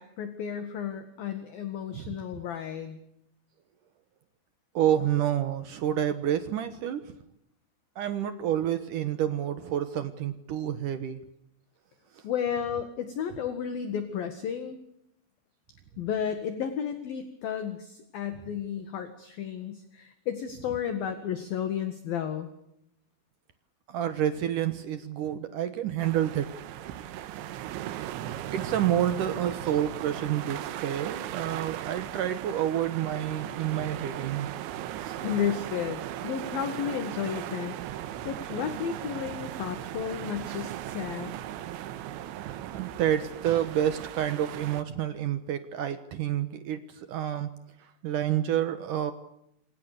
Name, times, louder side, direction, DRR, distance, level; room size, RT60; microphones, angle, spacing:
voice 1, 0.0-3.0 12.2-14.8 16.0-22.5 35.2-37.8 38.2-41.4, left 8 dB, 55° left, 9 dB, 3.1 m, -33 dB
voice 2, 4.7-7.1 8.0-11.2 12.1-12.2 23.9-26.5 26.8-27.1 28.5-34.5 35.0-35.2 42.3-42.4 42.7-47.5 47.8-49.1, right 11 dB, 90° right, 11 dB, 1.8 m, -29 dB
sound 1, 26.0-44.8, right 12 dB, 75° right, 3.4 m, -37 dB
28.5 x 26.0 x 6.8 m, 0.80 s
omnidirectional pair, 5.8 m